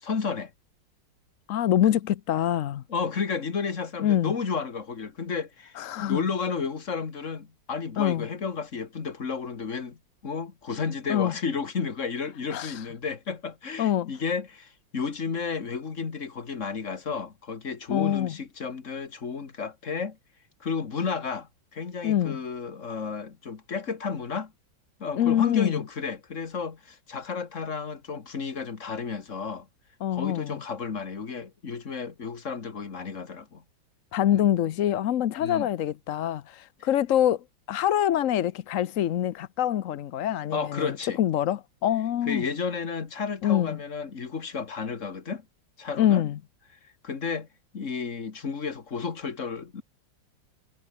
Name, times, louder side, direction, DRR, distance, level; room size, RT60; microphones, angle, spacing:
voice 1, 0.0-0.5 2.9-20.2 20.6-24.5 25.0-29.7 30.1-33.6 34.3-34.5 35.4-35.7 36.8-36.9 40.5-41.2 42.3-45.4 45.8-46.2 47.0-47.5 47.7-49.8, left 5 dB, 40° left, 2.1 m, -32 dB
voice 2, 1.5-2.8 4.0-4.3 5.8-6.3 8.0-8.3 11.1-11.3 12.5-12.8 13.8-14.1 17.9-18.3 22.0-22.4 25.2-25.8 30.0-30.6 34.1-42.5 43.4-43.8 46.0-46.4, left 11 dB, 60° left, 0.9 m, -25 dB
omnidirectional pair, 2.0 m